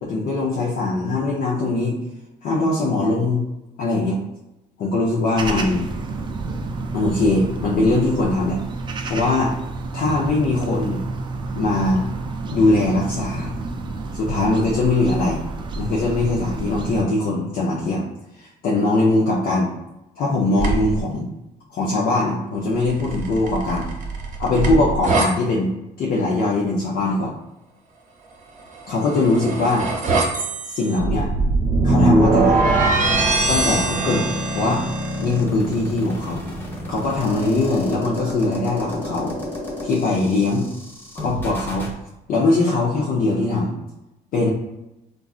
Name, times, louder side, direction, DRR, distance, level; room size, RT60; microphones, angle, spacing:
voice 1, 0.0-2.0 2.4-3.4 3.8-4.2 4.8-5.8 6.9-8.6 9.0-9.5 9.9-11.0 11.5-12.0 12.5-13.5 14.1-15.4 15.7-18.0 18.4-19.7 20.2-21.3 21.7-23.8 24.4-25.7 26.0-27.3 28.9-29.9 30.7-31.3 31.8-32.6 33.5-34.3 34.5-34.8 35.2-36.4 36.9-39.3 39.8-40.7 41.1-41.9 42.3-43.7 44.3-44.5, left 2 dB, 60° left, -5 dB, 0.6 m, -21 dB
sound 1, 5.4-17.0, right 3 dB, 30° right, 0.3 m, -30 dB
sound 2, 20.6-21.0 22.9-25.3 28.8-35.2, right 3 dB, 50° right, 0.7 m, -21 dB
sound 3, 33.9-41.9, left 1 dB, 15° left, 0.6 m, -31 dB
3.8 x 2.3 x 2.4 m, 0.93 s
cardioid pair, 110°, 17 cm